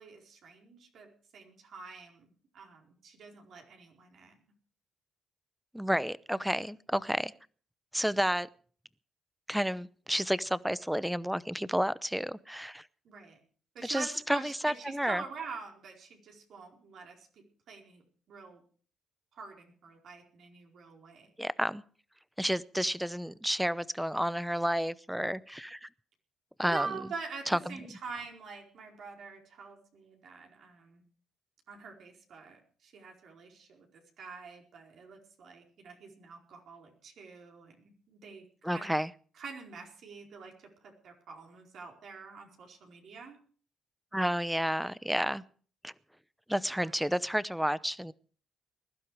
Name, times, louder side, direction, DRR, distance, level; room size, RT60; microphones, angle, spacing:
voice 1, 0.0-2.3 2.5-4.4 13.0-13.4 13.7-17.3 17.7-18.6 19.3-21.3 26.6-31.0 31.7-38.9 39.3-40.5 40.8-43.4 46.7-47.0, right 4 dB, 65° right, 1 dB, 4.6 m, -45 dB
voice 2, 5.7-7.3 7.9-8.5 9.5-12.8 13.8-15.2 21.4-21.8 22.4-25.9 26.6-26.9 27.5-27.8 38.6-39.1 44.1-45.4 45.8-45.9 46.5-48.1, equal, 5° right, 18 dB, 0.8 m, -31 dB
21.0 x 12.0 x 4.8 m, 0.43 s
cardioid pair, 90°, 0 cm